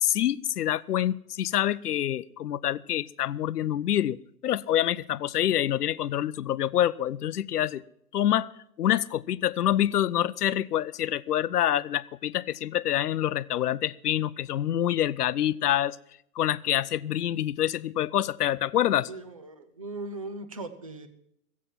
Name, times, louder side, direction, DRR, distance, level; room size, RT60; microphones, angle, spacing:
voice 1, 0.0-7.8 8.1-8.5 8.8-16.0 16.4-19.1, left 11 dB, 75° left, 18 dB, 0.7 m, -26 dB
voice 2, 19.1-21.1, right 2 dB, 25° right, 9 dB, 0.5 m, -39 dB
15.5 x 8.4 x 7.3 m, 0.74 s
hypercardioid pair, 165°, 47 cm